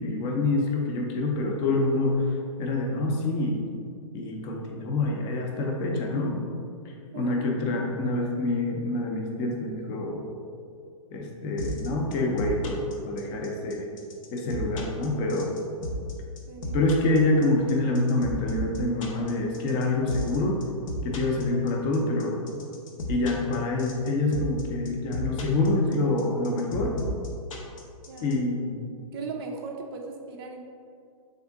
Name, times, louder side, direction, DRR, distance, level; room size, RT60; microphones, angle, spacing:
voice 1, 0.0-2.3 2.6-3.7 4.1-6.4 6.8-10.2 11.1-13.9 14.3-15.5 16.7-20.6 21.0-22.4 23.1-27.0 28.2-28.8, left 2 dB, 25° left, 0 dB, 0.5 m, -26 dB
sound 1, 11.6-28.3, left 1 dB, 65° left, 0.8 m, -34 dB
voice 2, 16.5-16.9 28.1-28.3 29.1-30.7, right 4 dB, 45° right, 1 dB, 0.4 m, -38 dB
3.6 x 3.5 x 3.5 m, 2.3 s
hypercardioid pair, 150°, 18 cm